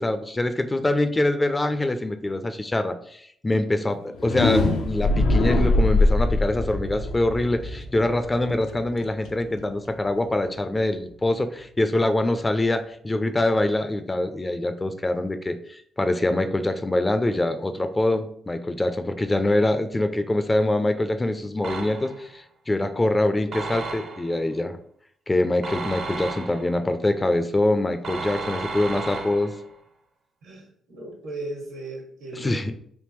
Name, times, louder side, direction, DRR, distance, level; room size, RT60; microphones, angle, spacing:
voice 1, 0.0-24.8 25.3-29.5 32.3-32.7, left 1 dB, 20° left, 8 dB, 0.3 m, -24 dB
sound 1, 4.1-10.0, left 2 dB, 85° left, 0.5 m, -23 dB
sound 2, 21.6-22.3 23.5-24.4 25.6-26.8 28.0-29.7, right 3 dB, 60° right, 0.6 m, -33 dB
voice 2, 30.4-32.7, right 2 dB, 85° right, 0 dB, 1.2 m, -37 dB
3.4 x 2.7 x 3.0 m, 0.65 s
cardioid pair, 90°, 0 cm